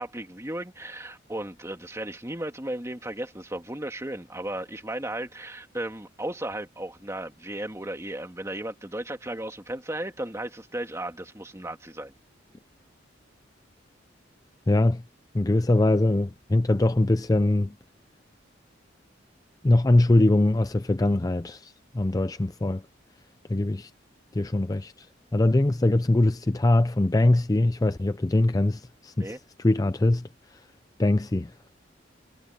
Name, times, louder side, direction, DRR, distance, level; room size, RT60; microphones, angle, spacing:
voice 1, 0.0-12.1 29.2-29.4, right 1 dB, 15° right, 2.1 m, -35 dB
voice 2, 14.7-15.0 15.3-17.8 19.6-22.8 23.5-23.9 24.3-25.1 25.3-30.6 31.0-31.5, left 2 dB, 20° left, 0.5 m, -22 dB
head